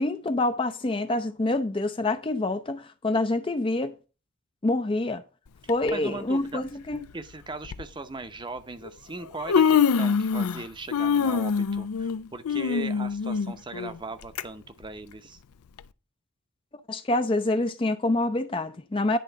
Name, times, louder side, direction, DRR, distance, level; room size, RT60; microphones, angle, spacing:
voice 1, 0.0-3.9 4.6-5.2 5.7-7.0 16.9-19.2, left 2 dB, 25° left, 0.4 m, -26 dB
Human voice, 5.7-5.9 6.9-7.0 7.6-7.8 8.8-8.9 9.2-10.6 10.9-14.4 14.8-14.9 15.8-15.9, left 6 dB, 85° left, 0.5 m, -24 dB
voice 2, 5.9-6.6 7.1-15.4, right 3 dB, 20° right, 0.7 m, -39 dB
10.0 x 3.7 x 6.7 m
head